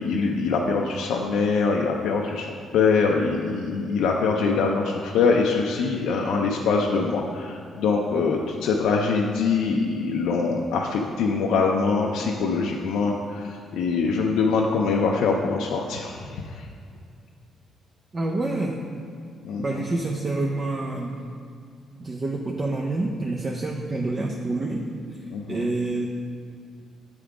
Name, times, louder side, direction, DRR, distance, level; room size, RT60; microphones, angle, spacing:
voice 1, 0.0-16.7 19.4-19.8 25.3-25.7, left 4 dB, 85° left, 0 dB, 0.4 m, -24 dB
voice 2, 18.1-18.9 19.6-21.2 22.0-24.9 25.5-26.1, right 2 dB, 35° right, -1 dB, 0.5 m, -27 dB
8.0 x 3.6 x 4.8 m, 2.2 s
cardioid pair, 90°, 0 cm